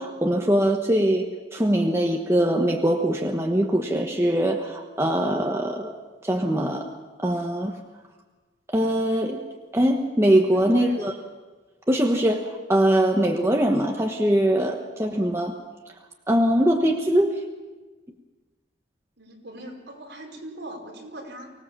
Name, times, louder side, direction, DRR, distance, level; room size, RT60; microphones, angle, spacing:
voice 1, 0.0-6.0 6.2-6.9 7.2-7.7 8.7-9.4 9.7-11.1 11.9-15.5 16.3-17.3, right 1 dB, 15° right, 1 dB, 1.2 m, -22 dB
voice 2, 10.5-11.2 19.2-21.5, right 1 dB, 60° right, -1 dB, 5.3 m, -40 dB
24.5 x 18.0 x 7.4 m, 1.3 s
head